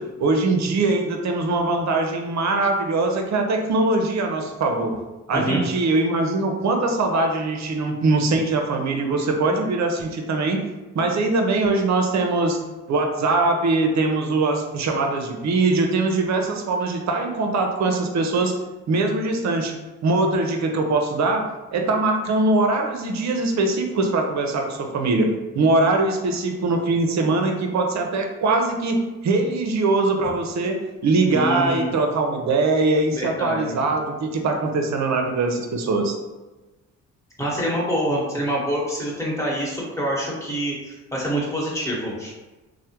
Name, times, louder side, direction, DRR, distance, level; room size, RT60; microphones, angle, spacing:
voice 1, 0.0-4.9 5.3-10.6 10.9-12.6 12.9-18.5 18.9-19.7 20.0-21.5 21.7-25.3 25.5-36.1, right 3 dB, 50° right, 3 dB, 0.6 m, -22 dB
voice 2, 5.3-5.6 31.3-31.9 33.1-33.8 37.4-42.3, equal, 10° left, -5 dB, 1.3 m, -26 dB
3.2 x 2.1 x 2.9 m, 1.1 s
supercardioid pair, 60°, 36 cm